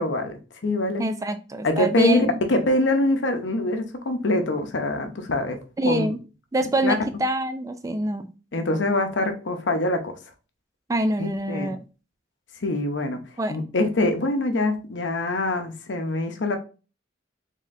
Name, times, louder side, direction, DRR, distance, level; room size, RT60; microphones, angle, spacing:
voice 1, 0.0-1.1 1.6-5.6 5.9-6.1 6.8-6.9 8.5-10.1 11.2-11.8 12.6-13.2 13.5-16.6, left 2 dB, 75° left, 0.7 m, -24 dB
voice 2, 1.0-2.4 5.8-6.2 6.5-8.3 10.9-11.8 13.4-13.5, right 1 dB, 20° right, 0.3 m, -25 dB
4.1 x 3.6 x 2.6 m
head